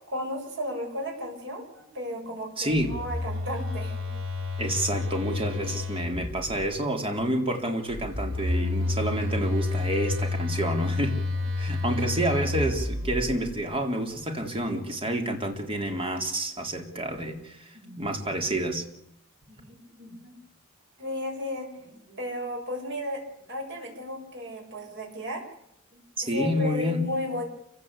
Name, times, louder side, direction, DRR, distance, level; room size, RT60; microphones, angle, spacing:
voice 1, 0.1-4.1 17.7-18.1 19.5-20.4 21.0-23.2 23.5-25.4 25.9-27.5, left 1 dB, 60° right, 1 dB, 7.6 m, -34 dB
voice 2, 2.6-3.0 4.6-11.2 11.6-18.9 26.2-27.1, right 1 dB, 25° right, 4 dB, 3.9 m, -29 dB
Telephone, 2.7-6.7 7.9-13.6, left 2 dB, 75° right, 4.1 m, -30 dB
28.5 x 16.5 x 8.5 m, 0.80 s
head